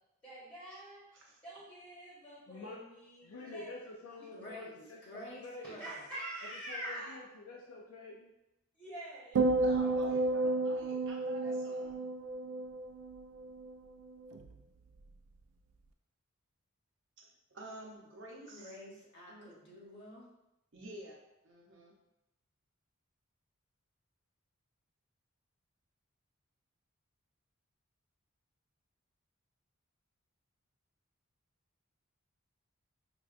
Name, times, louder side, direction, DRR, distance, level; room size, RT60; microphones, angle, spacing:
voice 1, 0.2-1.0 1.4-3.7 4.2-4.3 5.6-7.2 8.7-9.4, right 1 dB, 20° left, -10 dB, 1.1 m, -45 dB
voice 2, 2.5-2.8 3.2-5.8 6.5-8.3, left 2 dB, 75° left, -2 dB, 0.4 m, -48 dB
voice 3, 4.3-4.7 5.0-6.0 18.5-20.3, left 1 dB, 50° left, -5 dB, 1.1 m, -49 dB
sound 1, 9.4-13.7 14.0-14.5, right 2 dB, 85° right, 0.3 m, -32 dB
voice 4, 9.6-12.0 17.5-18.7 19.3-19.5 20.7-21.9, right 1 dB, 60° right, -2 dB, 0.8 m, -49 dB
4.8 x 2.2 x 2.4 m, 0.88 s
head